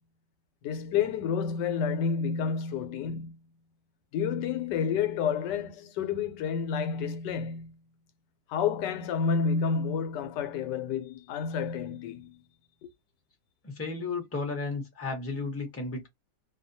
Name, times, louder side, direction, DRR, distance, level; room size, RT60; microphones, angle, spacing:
voice 1, 0.6-3.4 4.1-7.7 8.5-12.4 12.8-12.9, left 6 dB, 85° left, 1.2 m, -30 dB
voice 2, 13.6-16.1, left 3 dB, 10° left, 0.7 m, -33 dB
2.6 x 2.2 x 2.6 m
omnidirectional pair, 1.8 m